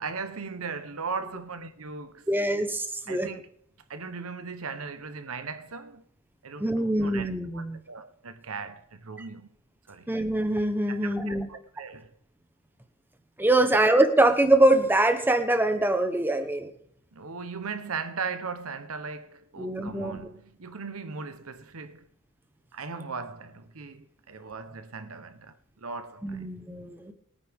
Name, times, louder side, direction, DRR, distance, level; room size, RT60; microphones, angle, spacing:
voice 1, 0.0-2.3 3.1-3.5 3.9-6.0 6.4-9.5 9.9-10.1 10.9-12.1 13.6-13.8 17.1-22.1 22.7-26.4, right 5 dB, 75° right, 1.0 m, -38 dB
voice 2, 2.3-3.3 6.6-7.8 10.1-11.5 13.4-16.7 19.6-20.2 26.2-27.1, right 1 dB, 10° right, 1.0 m, -23 dB
22.0 x 9.3 x 3.6 m
head